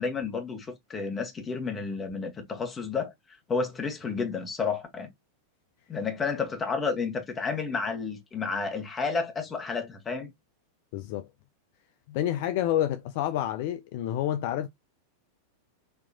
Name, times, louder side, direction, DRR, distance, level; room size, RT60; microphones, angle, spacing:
voice 1, 0.0-3.1 3.5-5.1 5.9-10.3, left 5 dB, 20° left, 1.2 m, -31 dB
voice 2, 10.9-11.3 12.1-14.7, left 12 dB, 50° left, 0.3 m, -28 dB
4.2 x 2.8 x 2.7 m
figure-of-eight pair, 90°, 0 cm